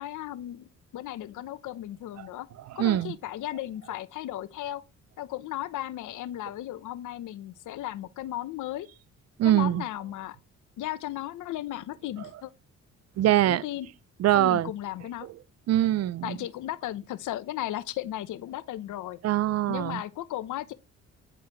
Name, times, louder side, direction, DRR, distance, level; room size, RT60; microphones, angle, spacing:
voice 1, 0.0-2.5 2.8-4.8 5.2-8.9 9.4-10.4 10.8-12.5 13.4-13.9 14.3-15.3 16.2-19.2 19.7-20.7, left 13 dB, 80° left, 0.9 m, -35 dB
voice 2, 2.8-3.1 9.4-9.8 13.2-13.6 14.2-14.7 15.7-16.4 19.2-20.0, right 13 dB, 55° right, 0.4 m, -23 dB
9.9 x 4.8 x 4.7 m
cardioid pair, 90°, 30 cm